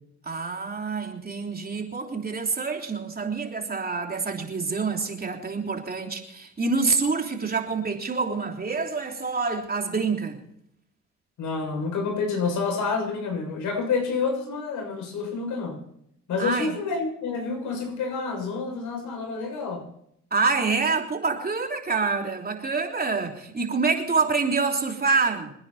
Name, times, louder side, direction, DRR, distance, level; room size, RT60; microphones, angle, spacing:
voice 1, 0.2-10.4 16.4-16.7 20.3-25.5, right 4 dB, 30° right, 2 dB, 3.4 m, -26 dB
voice 2, 11.4-15.8 16.3-19.9, left 4 dB, 80° left, 1 dB, 6.9 m, -28 dB
27.5 x 9.7 x 4.3 m, 0.73 s
cardioid pair, 90°, 30 cm